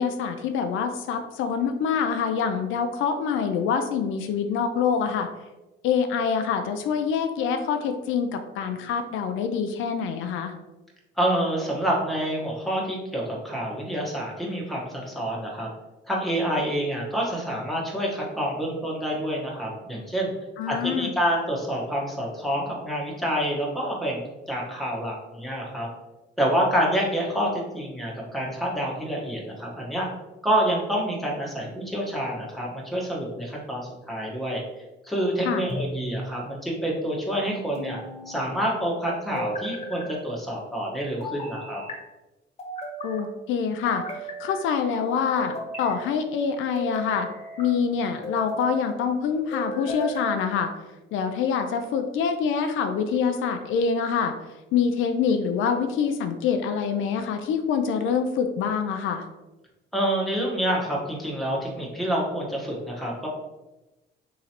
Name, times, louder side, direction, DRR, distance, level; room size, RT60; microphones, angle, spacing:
voice 1, 0.0-5.3 5.8-10.5 20.6-21.1 35.4-35.6 43.0-47.3 47.6-50.7 51.1-54.3 54.7-59.2, left 6 dB, 80° left, 6 dB, 0.4 m, -25 dB
voice 2, 11.2-15.7 16.1-20.3 20.7-25.9 26.4-30.1 30.4-34.6 35.0-38.0 38.3-41.8 59.9-63.3, equal, ahead, -3 dB, 1.1 m, -27 dB
sound 1, 35.7-36.4 37.7-38.5 39.4-40.1 41.2-42.0 42.6-43.2 43.9-44.7 45.4-46.0 46.7-47.7 48.2-48.8 49.5-50.3, equal, 30° left, 1.2 m, -34 dB
3.7 x 3.0 x 2.8 m, 1.0 s
cardioid pair, 90°, 20 cm